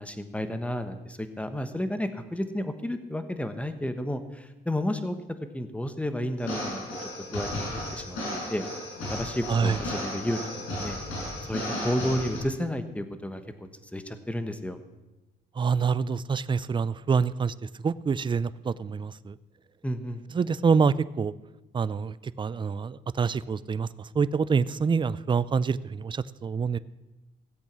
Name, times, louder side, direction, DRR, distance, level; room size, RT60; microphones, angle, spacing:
voice 1, 0.0-6.9 7.3-8.6 9.1-10.4 10.7-13.4 13.9-14.8 19.8-20.2, left 1 dB, 5° left, 9 dB, 1.2 m, -32 dB
sound 1, 6.4-12.4, left 1 dB, 85° left, 5.6 m, -34 dB
voice 2, 15.6-17.5 17.8-19.3 20.3-21.3 21.7-23.9 24.2-26.8, right 5 dB, 25° right, 18 dB, 0.4 m, -26 dB
15.5 x 8.2 x 6.1 m, 1.0 s
cardioid pair, 90°, 20 cm